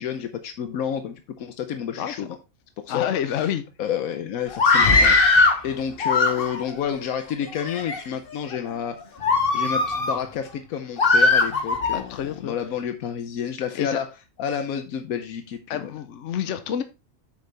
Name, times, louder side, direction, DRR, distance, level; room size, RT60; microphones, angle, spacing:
voice 1, 0.0-2.4 2.8-3.5 3.8-9.0 9.5-14.1 14.4-15.9, left 8 dB, 85° left, 1.2 m, -30 dB
voice 2, 2.9-3.6 11.9-12.6 13.7-14.0 15.7-16.8, left 9 dB, 65° left, 1.0 m, -28 dB
Screaming, 4.5-5.6 6.0-6.7 7.4-8.0 8.5-8.7 9.2-10.2 11.0-12.0, left 3 dB, 45° left, 1.3 m, -19 dB
8.3 x 6.7 x 3.3 m
omnidirectional pair, 1.4 m